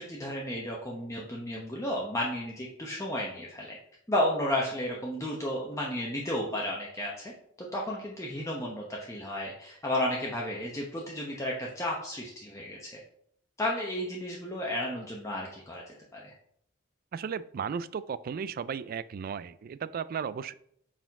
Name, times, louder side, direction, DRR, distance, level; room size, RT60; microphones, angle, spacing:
voice 1, 0.0-3.8 4.1-7.3 7.6-13.0 13.6-15.8 16.1-16.3, left 1 dB, 15° left, -3 dB, 0.9 m, -33 dB
voice 2, 17.1-20.5, right 6 dB, 50° right, 17 dB, 0.3 m, -35 dB
5.7 x 4.6 x 4.6 m, 0.68 s
head